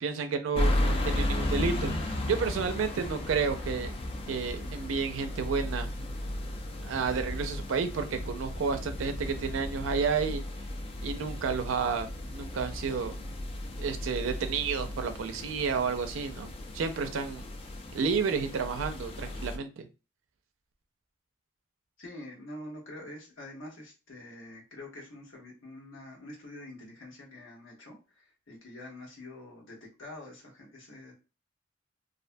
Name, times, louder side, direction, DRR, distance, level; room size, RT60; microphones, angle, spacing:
voice 1, 0.0-4.0 4.3-5.9 6.8-10.4 11.0-13.2 13.8-17.5 17.9-19.9, right 5 dB, 90° right, 8 dB, 0.4 m, -31 dB
sound 1, 0.5-19.6, left 1 dB, 30° left, 0.3 m, -34 dB
voice 2, 22.0-28.0 28.5-31.1, left 1 dB, 85° left, -2 dB, 1.0 m, -46 dB
2.5 x 2.1 x 2.5 m, 0.32 s
head